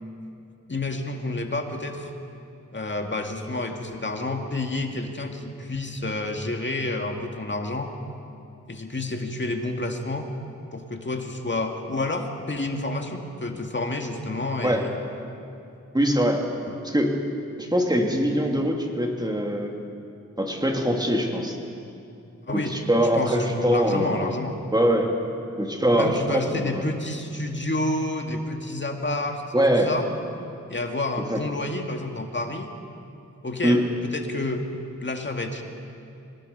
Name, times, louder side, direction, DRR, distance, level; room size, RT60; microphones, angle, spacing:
voice 1, 0.7-2.1 2.7-7.9 8.7-10.3 10.7-14.9 16.7-16.8 22.5-22.7 23.1-24.6 26.0-29.4 29.8-30.1 30.7-32.7 33.4-34.6 35.0-35.6, left 2 dB, 40° left, 3 dB, 2.1 m, -29 dB
voice 2, 15.9-16.4 16.8-17.1 17.6-19.8 20.4-21.6 22.5-24.3 24.7-25.1 25.6-26.9 29.5-29.9 31.3-31.4 33.6-33.8, equal, 15° right, 1 dB, 2.9 m, -23 dB
25.5 x 19.0 x 5.5 m, 2.6 s
wide cardioid pair, 65°, 30 cm